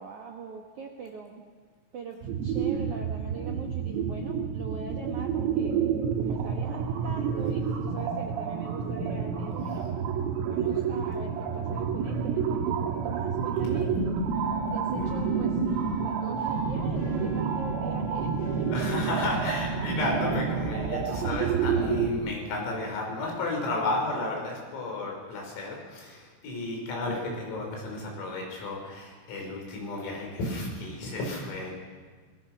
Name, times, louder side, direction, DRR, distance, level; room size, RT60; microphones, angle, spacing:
voice 1, 0.0-1.4 1.9-5.8 6.2-9.9 10.5-13.9 14.7-15.6 16.0-18.7, right 5 dB, 65° right, 0 dB, 1.9 m, -41 dB
sound 1, 2.2-22.1, right 6 dB, 80° right, 4.2 m, -29 dB
sound 2, 14.3-25.1 25.5-25.6, left 2 dB, 65° left, 10.0 m, -53 dB
voice 2, 18.7-31.7, left 2 dB, 85° left, 0 dB, 8.3 m, -32 dB
25.5 x 22.0 x 6.2 m, 1.5 s
omnidirectional pair, 5.9 m